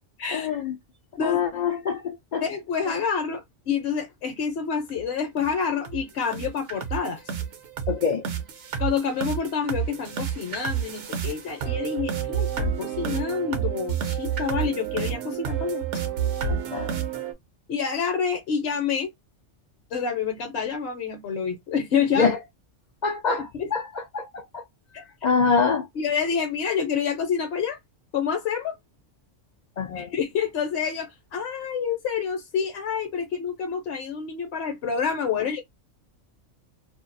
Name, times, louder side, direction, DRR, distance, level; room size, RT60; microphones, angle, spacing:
voice 1, 0.3-0.8 1.2-2.5 2.9-3.0 7.9-8.2 16.5-16.9 22.1-22.4 23.0-24.6 24.9-25.9 29.8-30.1, left 5 dB, 80° left, 0.4 m, -25 dB
voice 2, 2.4-7.2 8.8-15.8 17.7-19.1 19.9-22.3 23.5-23.7 24.9-25.0 26.0-27.8 28.1-28.7 30.0-35.6, left 6 dB, 60° left, 0.9 m, -28 dB
Sea World, 4.9-5.0 5.4-5.5 5.8-6.0 6.3-17.3, right 8 dB, 70° right, 1.0 m, -29 dB
2.5 x 2.3 x 2.6 m
omnidirectional pair, 1.3 m